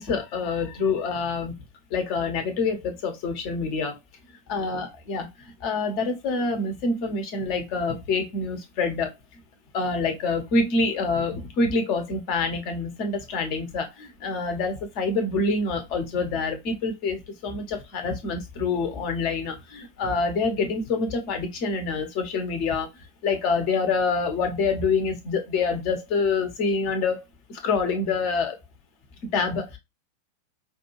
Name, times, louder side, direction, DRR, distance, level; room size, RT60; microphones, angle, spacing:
voice 1, 0.0-1.6 1.9-4.0 4.5-9.4 9.7-27.2 27.5-28.6 29.3-29.8, left 4 dB, 45° left, 1.0 m, -26 dB
5.1 x 2.6 x 3.0 m
figure-of-eight pair, 90°, 0 cm